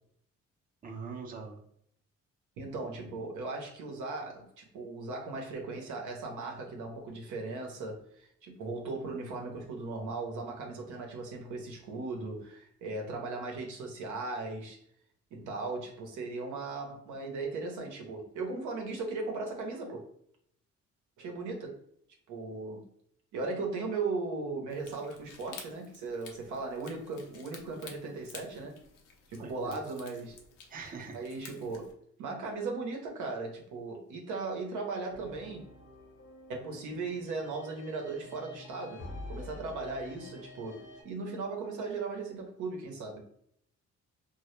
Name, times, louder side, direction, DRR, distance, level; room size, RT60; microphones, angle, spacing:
voice 1, 0.8-1.6 29.4-29.8 30.7-31.2, right 4 dB, 30° right, 1 dB, 0.5 m, -42 dB
voice 2, 2.6-14.8 15.3-20.0 21.2-21.8 22.3-22.8 23.3-28.8 29.3-30.4 31.1-31.9 32.2-35.7 36.5-43.2, right 3 dB, 80° right, 1 dB, 0.7 m, -37 dB
sound 1, 24.7-31.9, left 5 dB, 80° left, 0.6 m, -52 dB
sound 2, 35.1-41.0, left 1 dB, 40° left, 0.7 m, -47 dB
2.1 x 2.0 x 3.0 m, 0.68 s
cardioid pair, 90°, 30 cm